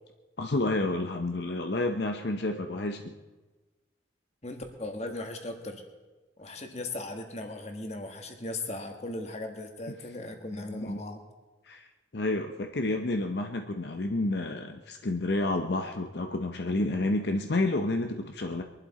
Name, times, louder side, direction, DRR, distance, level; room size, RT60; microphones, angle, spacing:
voice 1, 0.4-3.1 10.7-11.0 11.6-11.9 12.1-18.6, left 2 dB, 65° left, 5 dB, 0.7 m, -30 dB
voice 2, 4.4-5.8 6.4-11.2, left 2 dB, 35° left, 4 dB, 1.7 m, -38 dB
23.0 x 11.5 x 4.2 m, 1.2 s
head